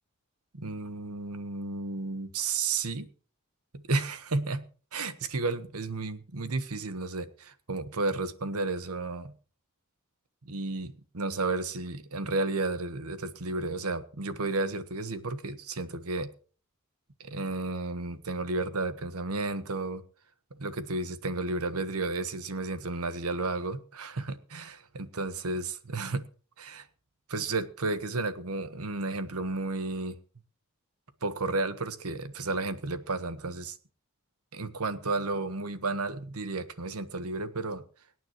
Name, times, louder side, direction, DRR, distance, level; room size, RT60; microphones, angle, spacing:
voice 1, 0.5-3.1 3.7-4.7 4.9-9.3 10.4-16.3 17.2-20.0 20.6-25.6 25.9-26.2 26.6-26.9 27.3-30.1 31.2-33.8 34.5-37.8, right 3 dB, 85° right, 12 dB, 1.3 m, -32 dB
24.5 x 9.3 x 3.0 m, 0.40 s
head